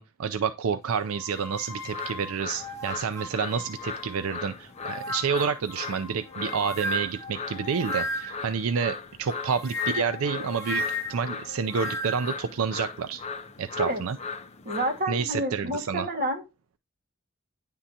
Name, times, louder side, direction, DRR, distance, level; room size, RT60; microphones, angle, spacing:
voice 1, 0.0-13.2 13.6-14.2 15.1-16.1, right 6 dB, 85° right, 0.4 m, -29 dB
sound 1, 1.1-4.3 4.8-8.5 9.3-12.4, left 1 dB, 15° left, 1.5 m, -35 dB
sound 2, 1.7-15.0, left 4 dB, 30° left, 0.5 m, -39 dB
voice 2, 14.7-16.5, right 1 dB, 45° right, 1.7 m, -29 dB
9.8 x 3.7 x 2.8 m
head